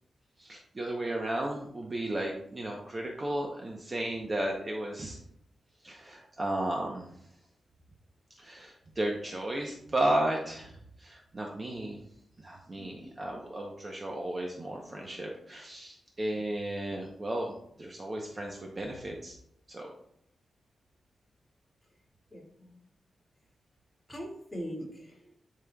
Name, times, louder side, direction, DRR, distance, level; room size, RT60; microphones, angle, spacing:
voice 1, 0.4-5.2 5.8-7.1 8.4-12.0 12.4-19.4 19.7-19.9, right 1 dB, 25° right, 0 dB, 0.7 m, -34 dB
voice 2, 12.8-13.1 22.3-22.8 24.1-25.3, equal, 10° left, -4 dB, 1.9 m, -42 dB
10.5 x 4.9 x 2.3 m, 0.70 s
wide cardioid pair, 170°, 0 cm